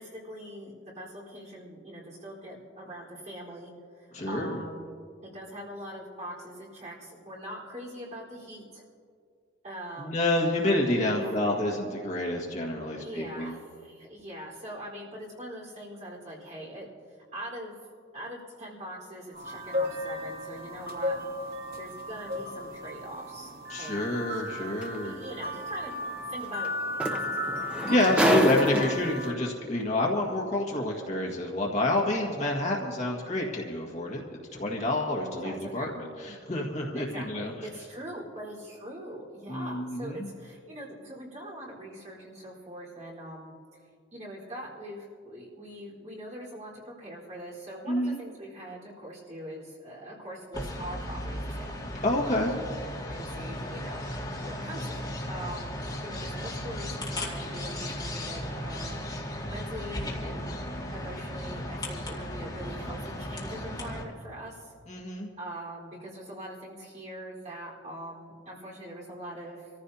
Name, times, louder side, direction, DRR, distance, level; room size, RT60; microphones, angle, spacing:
voice 1, 0.0-8.8 9.6-10.4 11.1-11.7 12.9-16.9 17.3-17.7 18.1-21.2 21.8-23.5 23.8-24.4 24.7-25.9 26.3-26.7 27.0-27.9 28.2-28.5 35.4-35.9 36.9-43.8 44.1-51.7 53.1-54.0 54.4-59.0 59.5-60.5 60.9-64.7 65.4-69.7, right 1 dB, 35° right, -5 dB, 4.2 m, -42 dB
voice 2, 4.1-4.6 10.0-13.5 23.7-25.2 27.9-34.2 34.5-37.5 39.5-40.3 47.9-48.2 52.0-52.5 64.9-65.3, left 1 dB, 35° left, -1 dB, 1.7 m, -28 dB
sound 1, 19.3-29.3, left 1 dB, 50° right, 2.2 m, -35 dB
sound 2, 24.8-25.0 26.6-26.7 27.0-29.2 30.2-30.3, right 1 dB, 5° right, 0.7 m, -27 dB
sound 3, 50.5-64.0, left 1 dB, 20° left, 2.2 m, -36 dB
26.0 x 14.5 x 2.8 m, 2.2 s
head